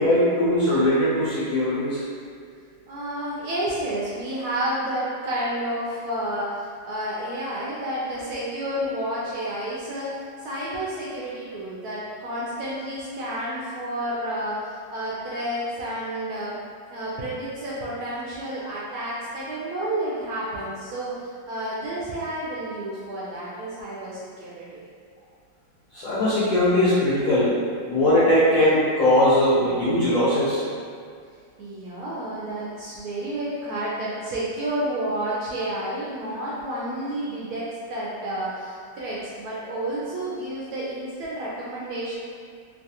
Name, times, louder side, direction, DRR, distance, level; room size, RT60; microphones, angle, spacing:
voice 1, 0.0-2.0 25.9-27.6 27.9-30.6, left 1 dB, 65° left, -9 dB, 0.8 m, -20 dB
voice 2, 2.9-16.5 16.9-24.8 31.6-42.2, right 1 dB, 75° right, -7 dB, 0.9 m, -30 dB
3.1 x 2.3 x 2.7 m, 2.1 s
omnidirectional pair, 2.0 m